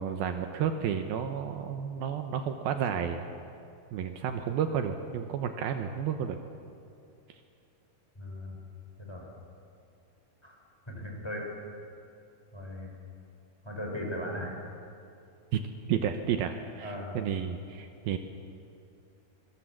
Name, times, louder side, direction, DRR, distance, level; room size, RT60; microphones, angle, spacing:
voice 1, 0.0-3.2 3.9-6.4 15.5-15.6 15.9-18.2, right 8 dB, 75° right, 6 dB, 2.7 m, -31 dB
voice 2, 8.2-8.6 9.0-9.3 10.4-10.6 10.9-11.4 12.5-12.9 13.6-14.5 16.8-17.2, equal, 5° left, -1 dB, 5.4 m, -37 dB
26.0 x 24.0 x 7.5 m, 2.6 s
omnidirectional pair, 4.6 m